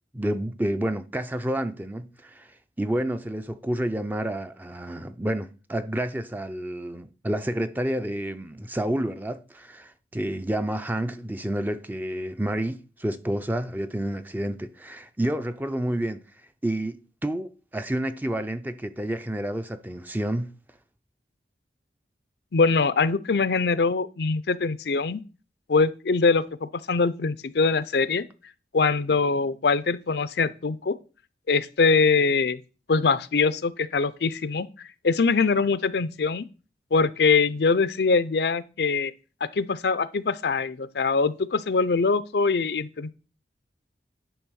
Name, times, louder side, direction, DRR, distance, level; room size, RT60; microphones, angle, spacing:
voice 1, 0.1-2.5 2.8-16.2 16.6-20.6, right 1 dB, 10° right, 0.5 m, -29 dB
voice 2, 22.5-25.2 25.7-28.2 28.7-30.9 31.5-32.6 32.9-36.5 36.9-39.1 39.5-43.1, left 4 dB, 70° left, 0.5 m, -23 dB
10.0 x 3.5 x 6.3 m
head